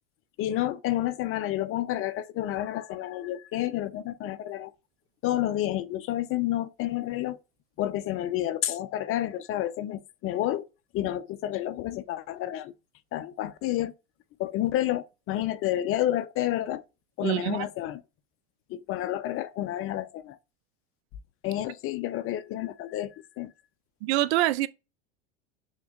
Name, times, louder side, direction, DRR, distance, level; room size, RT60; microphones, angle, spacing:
voice 1, 0.4-4.7 5.2-7.4 7.8-10.7 10.9-12.7 13.1-13.9 14.4-16.8 17.2-18.0 18.7-20.4 21.4-23.5, left 13 dB, 40° left, 0.4 m, -30 dB
voice 2, 17.2-17.7 24.0-24.7, right 16 dB, 70° right, 0.5 m, -25 dB
3.5 x 2.2 x 3.7 m
hypercardioid pair, 90°, 34 cm